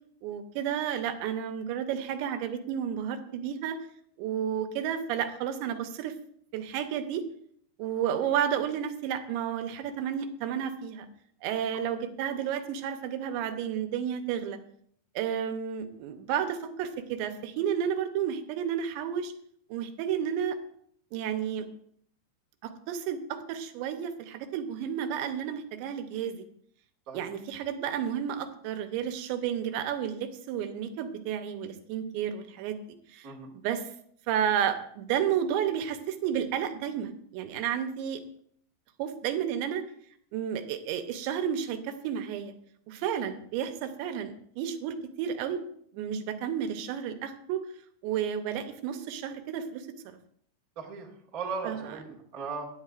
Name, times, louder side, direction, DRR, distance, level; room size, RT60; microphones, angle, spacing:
voice 1, 0.2-3.8 4.2-6.1 6.5-7.2 7.8-11.1 11.4-14.6 15.2-19.3 19.7-20.6 21.1-21.7 22.6-26.5 27.1-32.8 33.1-33.3 33.6-33.9 34.3-38.2 39.0-39.8 40.3-42.5 42.9-45.6 45.9-47.6 48.0-50.2 51.6-51.8, right 9 dB, 85° right, 7 dB, 3.1 m, -31 dB
voice 2, 50.7-52.7, right 4 dB, 40° right, -3 dB, 1.3 m, -37 dB
17.0 x 10.5 x 2.5 m, 0.64 s
omnidirectional pair, 5.0 m